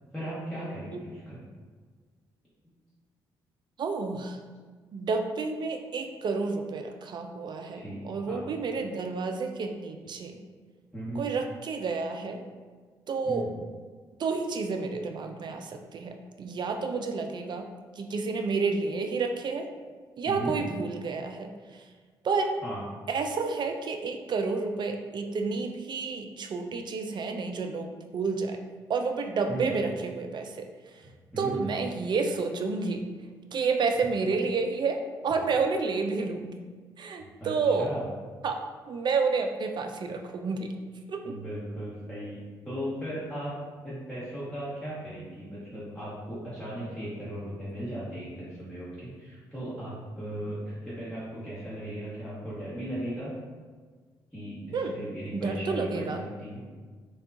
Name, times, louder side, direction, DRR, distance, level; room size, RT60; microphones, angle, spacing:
voice 1, 0.1-1.4 7.7-8.0 8.3-8.4 10.9-11.3 13.2-13.5 20.2-20.6 22.6-22.8 29.5-29.7 31.0-31.6 37.4-38.1 41.2-43.5 43.8-53.3 54.3-56.1 56.4-56.6, right 1 dB, ahead, -11 dB, 1.1 m, -37 dB
voice 2, 3.8-4.4 4.9-10.4 11.1-12.4 13.1-13.5 14.2-17.7 18.0-19.7 20.2-21.5 22.2-22.5 23.1-28.6 28.9-30.7 31.4-33.1 33.5-36.6 37.0-37.9 38.4-38.6 38.9-40.7 41.1-41.4 54.7-55.0 55.3-56.2, right 4 dB, 45° right, 5 dB, 0.3 m, -30 dB
3.5 x 2.2 x 2.5 m, 1.5 s
hypercardioid pair, 45°, 10 cm